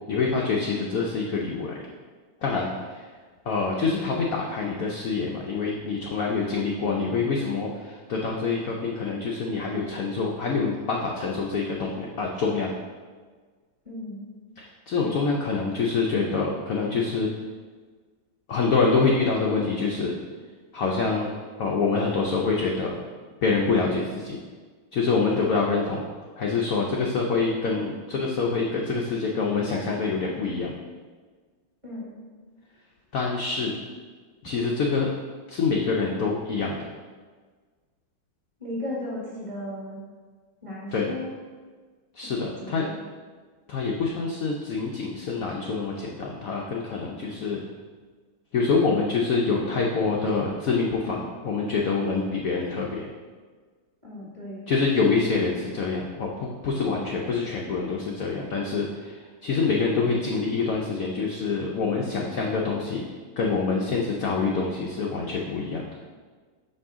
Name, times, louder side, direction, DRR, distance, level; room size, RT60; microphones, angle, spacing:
voice 1, 0.1-1.8 2.4-3.0 3.5-12.7 14.6-17.3 18.5-20.1 20.7-21.3 21.6-23.0 23.4-24.4 24.9-26.0 26.4-30.7 33.1-33.7 34.4-35.1 35.5-36.8 40.9-41.1 42.1-42.9 43.7-47.6 48.5-53.1 54.7-63.0 63.4-65.8, left 4 dB, 70° left, -2 dB, 0.8 m, -26 dB
voice 2, 13.8-14.2 31.8-32.1 38.6-40.0 40.6-41.3 42.2-43.0 54.0-54.7, left 1 dB, 15° right, -7 dB, 1.5 m, -36 dB
5.5 x 5.3 x 3.6 m, 1.5 s
omnidirectional pair, 2.1 m